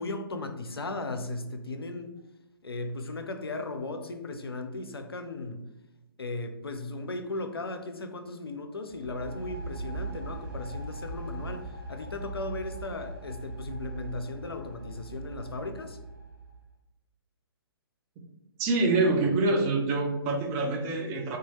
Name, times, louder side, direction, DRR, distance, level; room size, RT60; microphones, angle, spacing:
voice 1, 0.0-2.1 2.6-5.6 6.2-16.0, left 2 dB, 80° left, 6 dB, 0.4 m, -36 dB
sound 1, 8.9-16.6, right 2 dB, 60° right, 1.0 m, -40 dB
voice 2, 18.6-21.4, right 3 dB, 20° right, 2 dB, 0.4 m, -26 dB
2.6 x 2.3 x 2.9 m, 0.99 s
figure-of-eight pair, 125°, 13 cm